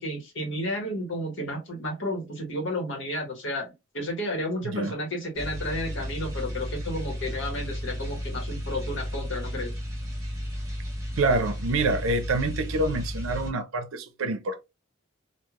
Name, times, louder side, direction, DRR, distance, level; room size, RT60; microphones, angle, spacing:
voice 1, 0.0-9.7, left 1 dB, 60° left, 1.2 m, -32 dB
voice 2, 4.6-4.9 11.2-14.6, right 2 dB, 80° right, 0.6 m, -26 dB
sound 1, 5.4-13.5, equal, 15° right, 1.5 m, -33 dB
3.2 x 2.4 x 2.4 m
head